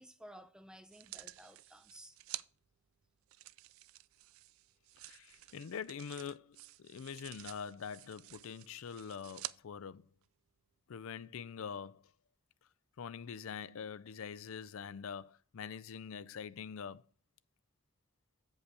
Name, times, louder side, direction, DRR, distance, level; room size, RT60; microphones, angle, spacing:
voice 1, 0.0-2.2, equal, 5° right, 0.4 m, -55 dB
sound 1, 0.9-2.5 3.3-9.6 10.2-10.3, right 16 dB, 75° right, 0.3 m, -50 dB
voice 2, 5.0-10.0 10.9-12.0 13.0-17.0, left 7 dB, 75° left, 0.4 m, -44 dB
8.4 x 5.3 x 4.7 m
head